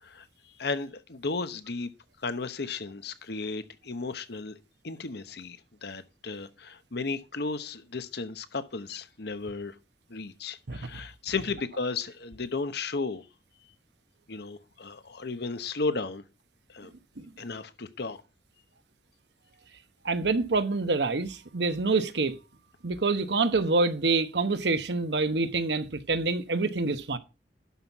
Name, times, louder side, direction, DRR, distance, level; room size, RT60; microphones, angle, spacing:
voice 1, 0.0-1.9 2.2-4.6 4.8-9.7 10.1-13.3 14.3-16.2 16.7-16.9 17.4-18.2, left 3 dB, 65° left, 1.0 m, -34 dB
voice 2, 20.0-22.3 22.8-27.2, right 3 dB, 70° right, 1.0 m, -26 dB
11.5 x 5.8 x 4.6 m
head